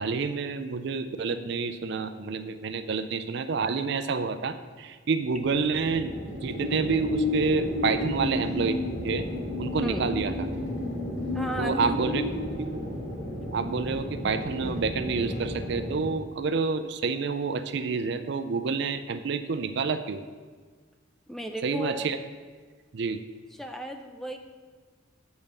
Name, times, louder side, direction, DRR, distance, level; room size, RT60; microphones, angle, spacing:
voice 1, 0.0-6.1 6.4-8.8 9.0-9.2 9.6-10.3 11.6-12.2 12.6-12.7 13.5-20.2 21.6-22.2 22.9-23.2, right 4 dB, 60° right, 10 dB, 0.4 m, -28 dB
sound 1, 5.3-16.1, left 1 dB, 60° left, 2.4 m, -32 dB
voice 2, 11.3-12.0 21.3-22.1 23.5-24.4, equal, ahead, 5 dB, 0.5 m, -34 dB
7.2 x 5.3 x 6.6 m, 1.5 s
head